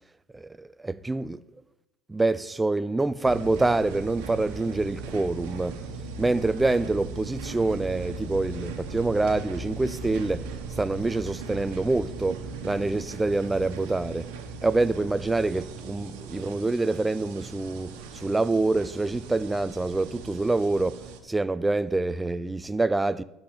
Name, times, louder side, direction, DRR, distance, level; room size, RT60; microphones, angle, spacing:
voice 1, 0.3-1.4 2.1-5.8 6.2-10.5 10.8-14.3 14.6-23.2, right 2 dB, 10° right, 0.4 m, -26 dB
sound 1, 3.2-21.2, right 4 dB, 80° right, 1.1 m, -38 dB
11.0 x 4.1 x 6.6 m
supercardioid pair, 105°, 0 cm